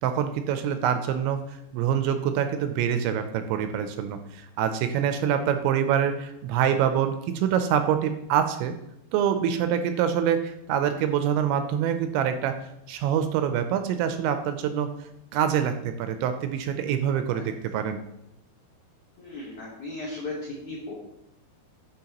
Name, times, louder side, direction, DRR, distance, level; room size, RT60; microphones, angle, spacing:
voice 1, 0.0-8.7 9.1-12.6 12.9-18.0, right 9 dB, 85° right, 8 dB, 2.8 m, -25 dB
voice 2, 19.2-20.3 20.7-20.9, left 3 dB, 70° left, -5 dB, 1.8 m, -36 dB
11.5 x 5.1 x 2.9 m, 0.81 s
omnidirectional pair, 5.4 m